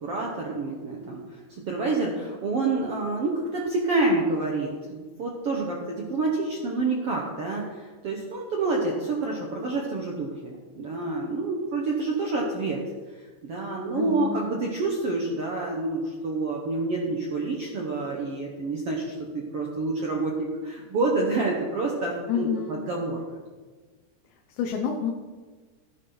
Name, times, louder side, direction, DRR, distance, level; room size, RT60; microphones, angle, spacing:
voice 1, 0.0-1.4 1.7-12.8 13.4-23.2, right 3 dB, 85° right, -1 dB, 1.3 m, -28 dB
voice 2, 13.9-14.4 22.3-22.8 24.6-25.1, left 7 dB, 90° left, 2 dB, 3.4 m, -28 dB
16.0 x 11.0 x 4.0 m, 1.4 s
omnidirectional pair, 5.0 m